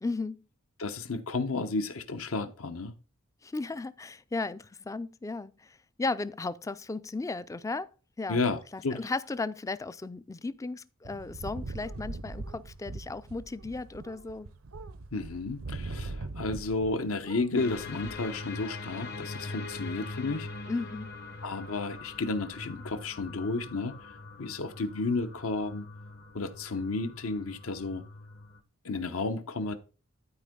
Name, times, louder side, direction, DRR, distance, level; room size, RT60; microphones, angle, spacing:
voice 1, 0.0-0.4 3.4-7.9 8.2-8.4 8.7-14.5 20.7-21.2, left 3 dB, 15° left, 0.3 m, -35 dB
voice 2, 0.8-2.9 8.3-9.0 15.1-20.5 21.4-24.1 24.4-25.9 26.3-28.0 28.8-29.8, left 3 dB, 75° left, 1.0 m, -32 dB
sound 1, 11.0-17.0 17.2-18.1, right 3 dB, 70° right, 0.6 m, -41 dB
sound 2, 17.6-28.6, left 3 dB, 50° left, 0.9 m, -42 dB
12.5 x 4.5 x 3.8 m
head